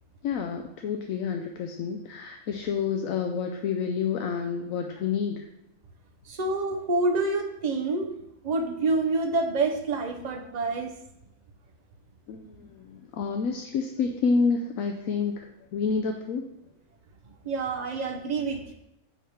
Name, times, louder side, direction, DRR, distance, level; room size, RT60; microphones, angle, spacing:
voice 1, 0.2-5.5 12.3-15.5 15.7-16.5, left 5 dB, 70° left, 4 dB, 1.0 m, -29 dB
voice 2, 6.3-8.1 8.4-10.9 17.4-18.7, right 3 dB, 35° right, 4 dB, 0.7 m, -27 dB
8.4 x 3.6 x 5.6 m, 0.83 s
omnidirectional pair, 1.6 m